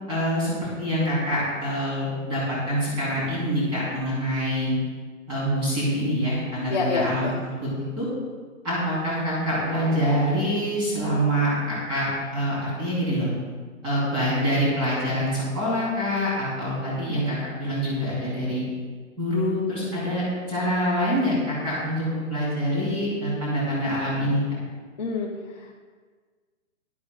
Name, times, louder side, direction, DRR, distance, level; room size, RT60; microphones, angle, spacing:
voice 1, 0.1-4.7 5.3-7.7 8.0-8.1 8.6-13.3 13.8-18.7 19.2-24.4, equal, 10° right, -7 dB, 3.4 m, -25 dB
voice 2, 6.7-7.3 25.0-25.3 25.6-25.7, left 4 dB, 35° left, -2 dB, 0.8 m, -27 dB
16.5 x 11.5 x 2.4 m, 1.5 s
hypercardioid pair, 170°, 41 cm